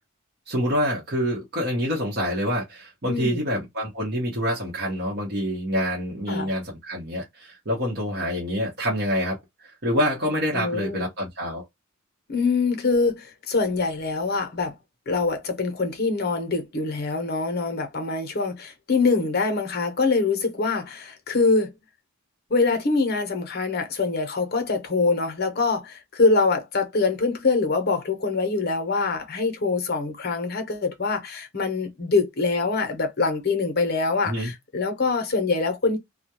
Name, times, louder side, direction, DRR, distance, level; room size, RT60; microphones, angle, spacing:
voice 1, 0.5-11.6 34.3-34.5, equal, 45° right, 0.8 m, -26 dB
voice 2, 3.1-3.5 6.3-6.5 10.5-11.0 12.3-14.7 15.1-21.7 22.5-36.0, left 3 dB, 45° left, 0.7 m, -24 dB
2.3 x 2.1 x 2.8 m
head